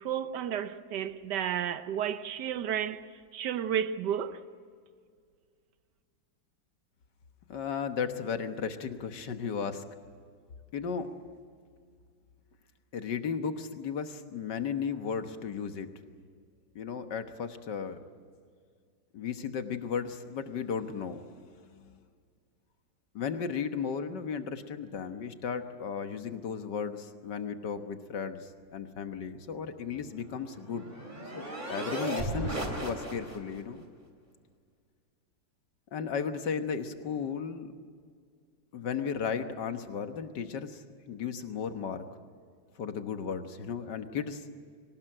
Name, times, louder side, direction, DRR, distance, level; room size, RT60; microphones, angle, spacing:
voice 1, 0.0-3.0 3.3-4.4, right 9 dB, 65° right, 1.4 m, -32 dB
voice 2, 7.5-9.9 10.7-11.1 12.9-15.9 16.8-18.0 19.1-22.0 23.2-30.9 31.3-31.4 31.7-33.9 35.9-37.7 38.7-42.1 42.8-44.5, left 6 dB, 65° left, 1.8 m, -35 dB
sound 1, 30.0-33.6, right 1 dB, 25° right, 3.4 m, -36 dB
23.0 x 19.0 x 9.0 m
omnidirectional pair, 2.0 m